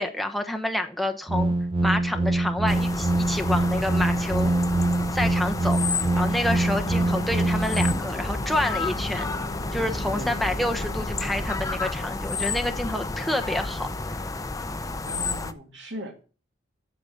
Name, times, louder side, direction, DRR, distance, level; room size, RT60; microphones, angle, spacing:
voice 1, 0.0-1.5 1.8-4.5 5.1-9.3 9.7-13.9, left 1 dB, ahead, 4 dB, 1.0 m, -28 dB
sound 1, 1.3-7.9, right 2 dB, 30° right, 0.8 m, -24 dB
sound 2, 2.7-15.5, left 3 dB, 20° left, 0.6 m, -31 dB
sound 3, 6.5-13.6, equal, 40° left, 1.9 m, -39 dB
voice 2, 10.1-10.7 15.1-16.2, right 1 dB, 75° right, 3 dB, 2.5 m, -39 dB
8.5 x 7.0 x 7.0 m, 0.36 s
head